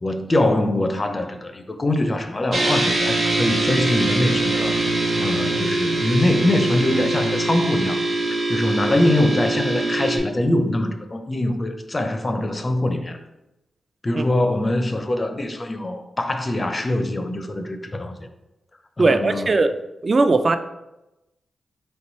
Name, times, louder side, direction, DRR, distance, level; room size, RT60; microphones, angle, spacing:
voice 1, 0.0-4.8 5.2-8.0 8.5-13.2 14.0-18.3 19.0-19.5, left 1 dB, 30° left, 0.4 m, -23 dB
sound 1, 2.5-10.2, right 2 dB, 75° right, 1.1 m, -23 dB
voice 2, 19.0-19.8 20.0-20.6, right 3 dB, 40° right, 0.3 m, -18 dB
3.2 x 3.0 x 4.1 m
cardioid pair, 70°, 0 cm